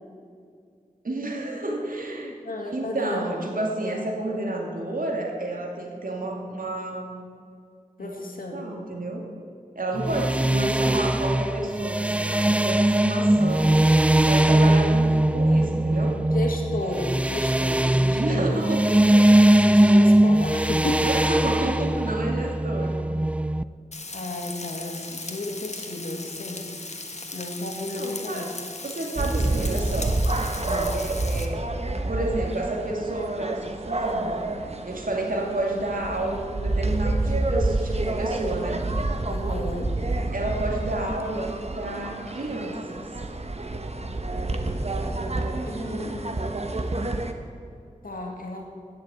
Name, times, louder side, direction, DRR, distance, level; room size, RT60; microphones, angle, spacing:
voice 1, 1.0-2.4 2.7-7.1 8.0-8.1 8.5-9.3 9.8-13.8 14.3-16.2 18.1-19.2 20.1-20.2 21.0-23.1 28.0-28.6 28.8-30.2 30.9-31.7 32.1-38.9 40.3-43.0, right 2 dB, 75° right, 0 dB, 2.3 m, -30 dB
voice 2, 2.4-3.5 8.0-8.6 16.3-18.6 19.6-21.1 24.1-26.7 27.3-28.5 30.6-31.0 39.3-39.9 45.7-46.4 48.0-48.7, left 2 dB, 85° left, 1 dB, 2.1 m, -33 dB
sound 1, 10.0-23.6, right 1 dB, 10° right, 0.3 m, -20 dB
Frying (food), 23.9-31.4, left 3 dB, 50° left, 1.4 m, -37 dB
sound 2, 29.2-47.3, right 2 dB, 50° right, 1.2 m, -28 dB
15.5 x 6.8 x 8.7 m, 2.3 s
wide cardioid pair, 50°, 14 cm